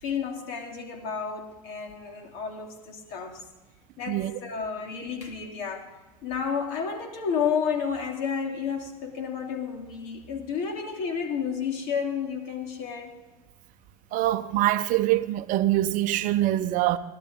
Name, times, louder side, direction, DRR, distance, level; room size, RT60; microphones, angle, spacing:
voice 1, 0.0-3.4 4.0-5.9 6.2-13.1, left 6 dB, 55° left, 3.1 m, -31 dB
voice 2, 4.1-4.4 14.1-17.0, right 14 dB, 45° right, 0.7 m, -24 dB
18.5 x 12.0 x 3.6 m
hypercardioid pair, 105°, 20 cm